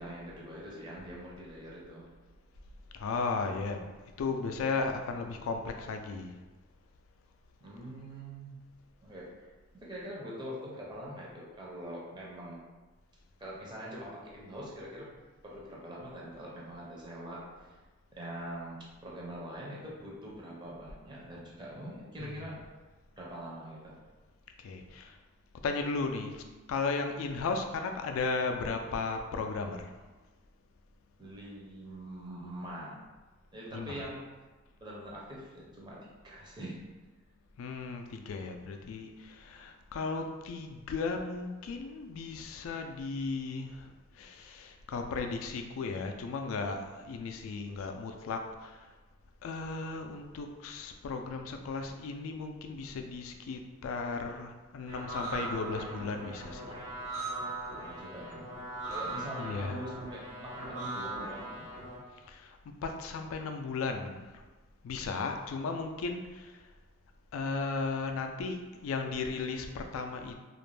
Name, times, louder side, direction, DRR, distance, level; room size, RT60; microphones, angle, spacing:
voice 1, 0.0-2.1 7.6-8.6 9.0-9.5 9.7-12.6 13.4-15.1 15.4-17.8 18.1-22.7 23.2-24.0 31.2-33.1 33.5-34.3 34.8-36.8 57.4-58.6 58.9-61.7, equal, 20° right, -5 dB, 0.5 m, -43 dB
voice 2, 2.9-3.9 4.2-6.3 22.2-22.3 24.6-25.2 25.6-26.4 26.7-29.9 33.7-34.1 37.6-48.8 49.4-56.7 59.4-59.8 62.3-64.4 64.8-66.6 67.3-70.3, left 4 dB, 85° left, 5 dB, 0.3 m, -35 dB
sound 1, 54.9-62.0, right 2 dB, 75° right, 0.7 m, -39 dB
2.4 x 2.1 x 3.1 m, 1.2 s
head